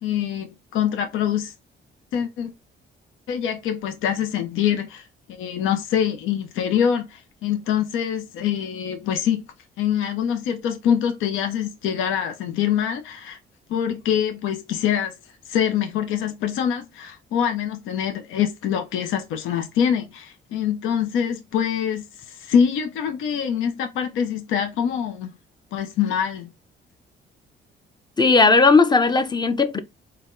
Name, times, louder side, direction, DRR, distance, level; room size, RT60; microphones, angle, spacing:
voice 1, 0.0-1.5 2.1-2.5 3.3-9.5 9.8-13.4 13.7-15.1 15.5-25.3 25.7-26.5, left 8 dB, 85° left, 0.6 m, -24 dB
voice 2, 28.2-29.8, left 3 dB, 20° left, 0.5 m, -16 dB
4.1 x 2.2 x 3.7 m
cardioid pair, 90°, 20 cm